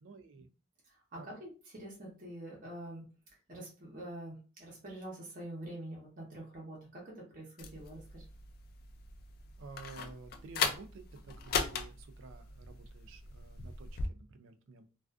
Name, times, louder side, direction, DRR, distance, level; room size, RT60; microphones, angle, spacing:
voice 1, 0.0-0.5 1.1-1.3 9.6-14.9, right 4 dB, 70° right, 8 dB, 0.3 m, -51 dB
voice 2, 0.8-3.1 3.5-8.2, right 1 dB, 40° right, -4 dB, 0.7 m, -46 dB
sound 1, 7.6-14.1, left 5 dB, 45° left, 0.3 m, -39 dB
2.3 x 2.3 x 2.3 m, 0.35 s
head